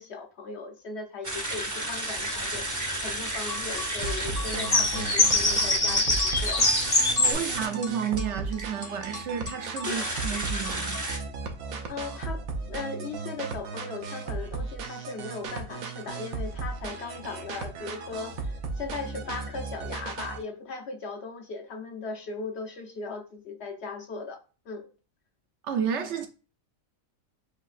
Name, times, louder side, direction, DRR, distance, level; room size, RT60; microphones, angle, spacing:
voice 1, 0.0-6.8 7.3-7.5 9.9-10.2 11.9-12.4 12.7-24.4 24.7-24.9, left 4 dB, 60° left, 0.8 m, -38 dB
sound 1, 1.2-11.2, right 1 dB, 20° right, 0.5 m, -33 dB
sound 2, 2.0-7.3, left 2 dB, 30° left, 0.4 m, -25 dB
sound 3, 4.0-20.4, right 4 dB, 85° right, 1.2 m, -36 dB
voice 2, 7.2-11.0 25.6-26.3, right 7 dB, 65° right, 0.8 m, -31 dB
6.4 x 2.8 x 2.4 m
omnidirectional pair, 1.4 m